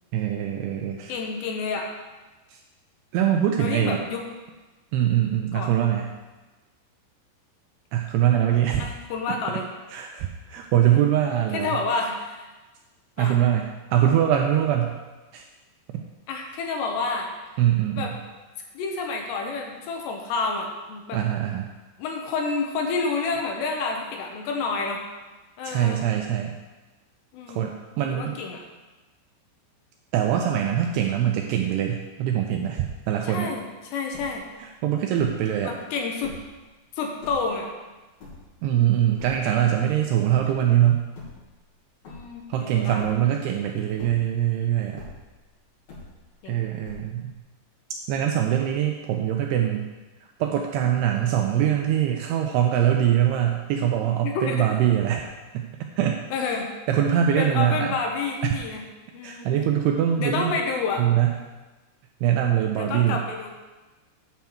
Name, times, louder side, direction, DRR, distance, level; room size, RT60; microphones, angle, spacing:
voice 1, 0.1-1.2 2.5-2.6 3.1-4.0 4.9-6.1 7.9-8.9 9.3-9.6 9.9-11.8 13.2-15.0 15.3-15.4 15.9-16.0 17.6-18.2 21.1-21.7 25.6-26.6 27.5-28.4 30.1-33.5 34.6-35.8 38.6-41.1 42.5-45.1 46.5-47.3 48.1-49.9 50.4-55.3 55.5-55.7 56.0-56.2 56.9-57.9 59.2-60.6 61.0-61.4 62.2-63.2, right 10 dB, 85° right, 2 dB, 2.4 m, -23 dB
voice 2, 1.1-1.9 3.6-4.2 5.5-5.7 8.8-9.7 10.9-11.0 11.5-12.4 13.2-13.4 16.3-17.3 17.9-18.1 18.7-21.2 22.0-25.0 25.6-26.0 27.3-27.7 28.1-28.6 33.2-34.4 35.6-36.3 37.0-37.7 42.1-43.0 46.4-46.6 54.1-54.7 56.3-56.7 57.4-58.8 59.1-59.6 60.2-61.1 62.8-63.5, left 4 dB, 75° left, 2 dB, 3.0 m, -29 dB
sound 1, 34.1-34.6 35.2-35.6 36.1-36.6 37.2-37.6 38.2-38.8 39.2-39.6 40.2-40.6 41.0-41.7 42.0-42.6 43.0-43.5 43.9-44.5 45.0-45.4 45.9-46.5 46.8-47.4, left 2 dB, 55° left, 4.4 m, -43 dB
9.4 x 4.5 x 7.1 m, 1.2 s
omnidirectional pair, 5.2 m